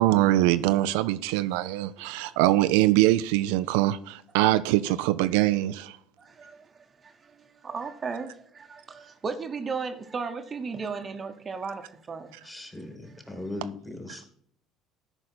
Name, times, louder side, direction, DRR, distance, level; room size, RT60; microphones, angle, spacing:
voice 1, 0.0-6.0, right 16 dB, 80° right, 0.3 m, -23 dB
voice 2, 6.2-6.7 7.0-12.4, right 5 dB, 35° right, 0.9 m, -35 dB
voice 3, 12.4-14.3, left 2 dB, 15° left, 2.4 m, -38 dB
13.5 x 4.9 x 4.4 m
hypercardioid pair, 65°, 0 cm